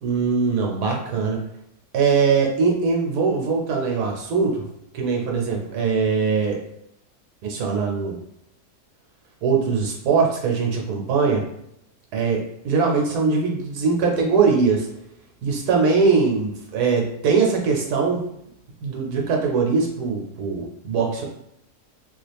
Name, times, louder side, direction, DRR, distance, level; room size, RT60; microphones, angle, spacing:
voice 1, 0.0-1.4 1.9-4.7 4.9-6.6 7.4-8.2 9.4-11.4 12.1-14.9 15.4-18.2 18.8-21.2, right 5 dB, 80° right, 0 dB, 1.2 m, -21 dB
3.4 x 2.4 x 3.3 m, 0.79 s
omnidirectional pair, 1.7 m